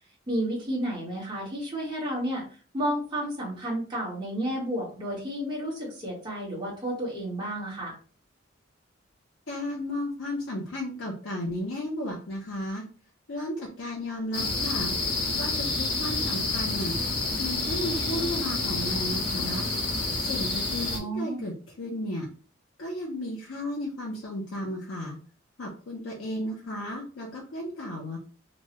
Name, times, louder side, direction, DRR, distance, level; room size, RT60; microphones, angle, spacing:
voice 1, 0.3-2.4 2.7-8.0 20.9-21.4, right 1 dB, 20° right, -6 dB, 1.2 m, -31 dB
voice 2, 9.5-12.8 13.3-15.0 15.4-17.0 17.4-19.7 20.2-22.3 22.8-25.2 25.6-28.2, left 1 dB, 85° left, -2 dB, 0.7 m, -34 dB
sound 1, 14.3-21.0, left 3 dB, 65° left, 1.1 m, -28 dB
3.0 x 2.3 x 2.9 m, 0.38 s
head